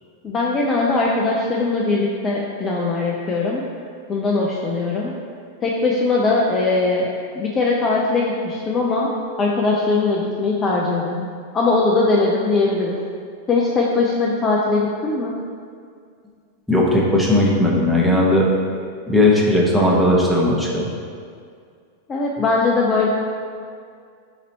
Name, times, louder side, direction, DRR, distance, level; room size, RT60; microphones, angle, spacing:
voice 1, 0.2-3.6 4.1-5.1 5.6-7.1 7.4-9.1 9.4-13.0 13.5-15.3 22.1-23.1, left 3 dB, 25° left, -3 dB, 0.4 m, -20 dB
voice 2, 16.7-18.5 19.1-20.8, left 1 dB, ahead, -4 dB, 0.8 m, -17 dB
4.0 x 2.6 x 4.2 m, 2.2 s
figure-of-eight pair, 90°, 0 cm